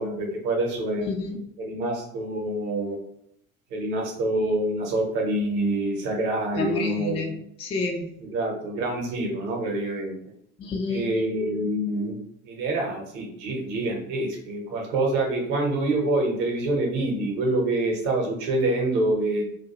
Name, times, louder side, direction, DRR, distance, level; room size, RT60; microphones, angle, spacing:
voice 1, 0.0-1.1 1.6-3.0 3.7-7.3 8.2-10.1 10.9-12.2 12.5-19.4, right 2 dB, 55° right, 1 dB, 1.0 m, -26 dB
voice 2, 6.6-8.1 10.6-11.1, left 3 dB, 15° left, 2 dB, 0.3 m, -29 dB
2.4 x 2.2 x 2.9 m, 0.71 s
figure-of-eight pair, 60°, 41 cm